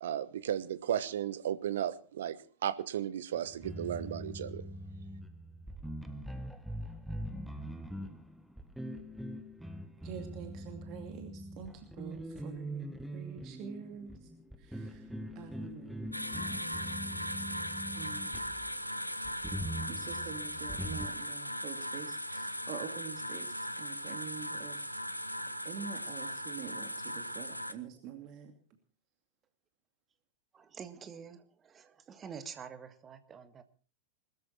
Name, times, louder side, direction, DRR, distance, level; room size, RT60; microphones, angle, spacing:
voice 1, 0.0-4.6, right 10 dB, 60° right, 16 dB, 1.1 m, -35 dB
sound 1, 3.3-18.7 19.2-21.1, right 1 dB, ahead, 1.5 m, -42 dB
voice 2, 10.0-14.3 14.6-15.1 15.3-16.3 18.0-18.4 19.9-25.0 25.6-28.5, right 7 dB, 40° right, 6 dB, 2.5 m, -46 dB
sound 2, 16.1-27.7, equal, 90° left, 1.0 m, -38 dB
voice 3, 30.5-33.6, right 7 dB, 25° right, 10 dB, 1.7 m, -47 dB
21.5 x 13.5 x 4.4 m, 0.40 s
figure-of-eight pair, 90°, 0 cm